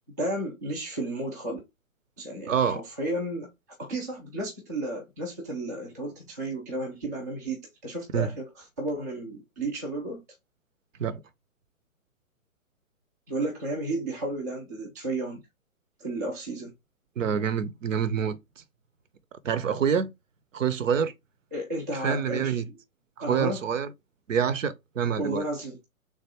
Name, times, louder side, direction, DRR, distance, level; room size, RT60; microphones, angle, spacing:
voice 1, 0.2-1.6 2.2-3.5 3.8-10.2 13.3-15.4 16.0-16.7 21.5-22.7 23.2-23.6 25.2-25.8, right 1 dB, 15° right, 0.3 m, -33 dB
voice 2, 2.5-2.8 8.1-8.3 11.0-11.2 17.2-18.4 19.4-20.1 20.5-21.1 21.9-22.7 23.2-23.9 24.3-25.4, right 7 dB, 65° right, 0.7 m, -26 dB
3.4 x 2.5 x 4.2 m
figure-of-eight pair, 125°, 43 cm